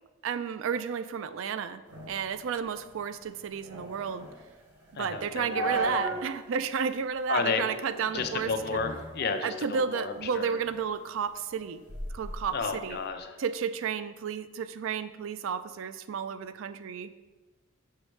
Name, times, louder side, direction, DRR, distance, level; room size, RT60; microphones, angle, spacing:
voice 1, 0.2-1.8 2.1-4.3 4.9-8.8 9.4-11.8 12.1-13.0 13.4-17.1, right 6 dB, 65° right, 13 dB, 0.3 m, -32 dB
sound 1, 1.9-6.3 6.7-6.8 7.4-7.8 8.1-10.2 10.6-13.1, right 2 dB, 90° right, 1.8 m, -37 dB
voice 2, 4.9-6.2 7.3-7.6 7.9-10.6 12.5-13.4, left 5 dB, 50° left, 7 dB, 0.5 m, -32 dB
6.4 x 6.1 x 3.2 m, 1.2 s
head